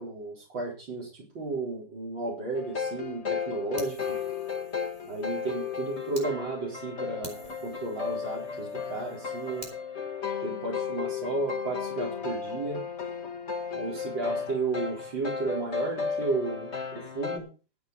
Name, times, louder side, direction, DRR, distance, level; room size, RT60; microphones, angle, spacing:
voice 1, 0.0-4.2 5.0-9.7 10.4-12.8 13.7-17.5, right 3 dB, 90° right, -4 dB, 5.0 m, -33 dB
sound 1, 2.5-17.4, left 6 dB, 40° left, 1.8 m, -34 dB
Fire, 3.8-6.3 6.7-6.8 7.2-9.8, right 1 dB, 20° right, 3.8 m, -49 dB
13.0 x 9.4 x 5.3 m, 0.34 s
omnidirectional pair, 2.0 m